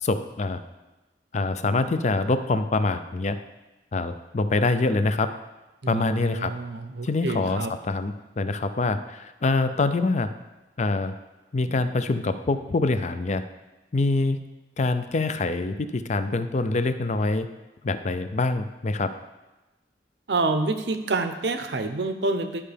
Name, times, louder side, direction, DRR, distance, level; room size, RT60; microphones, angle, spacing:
voice 1, 0.0-0.6 1.3-3.4 3.9-5.3 5.9-6.5 7.0-10.3 10.8-11.1 11.5-13.4 13.9-14.4 14.8-17.5 17.8-19.1, left 3 dB, 40° left, 10 dB, 0.4 m, -25 dB
voice 2, 5.8-7.7 20.3-22.6, right 3 dB, 70° right, 8 dB, 0.7 m, -28 dB
11.5 x 5.5 x 3.4 m, 1.1 s
head